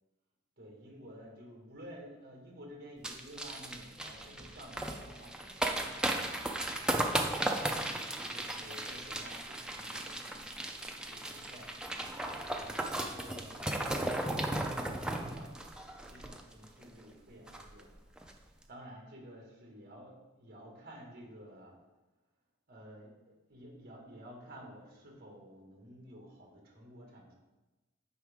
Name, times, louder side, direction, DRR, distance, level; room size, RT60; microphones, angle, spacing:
voice 1, 0.6-7.1 7.8-10.4 11.1-11.8 12.5-15.7 16.1-17.9 18.7-21.7 22.7-27.4, equal, 45° right, 0 dB, 1.7 m, -52 dB
sound 1, 3.0-16.8 17.1-17.2 17.5-17.8 18.2-18.3, right 1 dB, 5° right, 0.5 m, -36 dB
9.2 x 4.8 x 3.6 m, 1.1 s
head